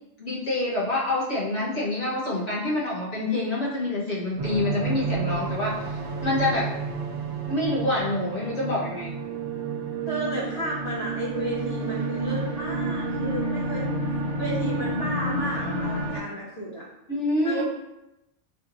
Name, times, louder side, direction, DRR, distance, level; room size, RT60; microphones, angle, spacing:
voice 1, 0.2-5.7 6.2-6.6 7.5-9.1 17.1-17.6, left 2 dB, 80° left, -7 dB, 1.8 m, -26 dB
sound 1, 4.4-16.2, right 3 dB, 75° right, 1.1 m, -30 dB
voice 2, 10.1-13.8 14.4-16.9 17.4-17.6, equal, 55° left, -8 dB, 2.0 m, -32 dB
5.0 x 3.7 x 2.7 m, 0.92 s
omnidirectional pair, 1.2 m